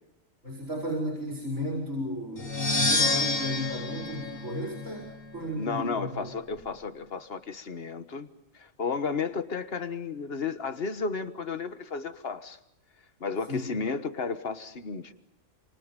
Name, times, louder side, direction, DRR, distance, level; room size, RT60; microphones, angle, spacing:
voice 1, 0.4-6.6 13.5-13.8, equal, 70° right, 6.2 m, -34 dB
sound 1, 2.4-5.2, left 3 dB, 80° left, 2.3 m, -28 dB
voice 2, 5.5-8.3 8.5-12.6 13.2-15.1, left 5 dB, 50° left, 1.6 m, -33 dB
28.5 x 27.5 x 5.4 m
omnidirectional pair, 1.4 m